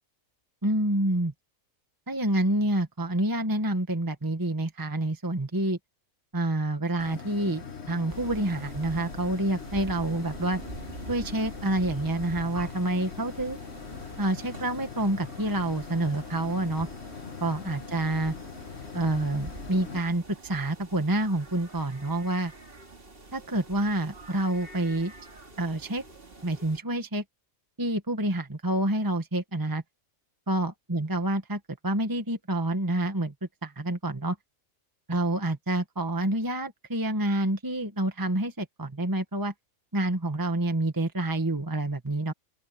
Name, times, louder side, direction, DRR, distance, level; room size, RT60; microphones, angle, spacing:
voice 1, 0.6-1.3 2.1-5.8 6.3-10.6 11.1-13.6 14.2-16.9 17.4-18.3 18.9-22.5 23.3-25.1 25.6-26.0 26.4-27.2 27.8-29.8 30.5-33.3 33.6-34.4 35.1-39.5 39.9-42.3, right 1 dB, 15° right, 1.5 m, -28 dB
sound 1, 7.0-20.0, left 6 dB, 55° left, 1.6 m, -42 dB
sound 2, 8.1-26.8, right 2 dB, 45° right, 2.7 m, -46 dB
open air
omnidirectional pair, 1.4 m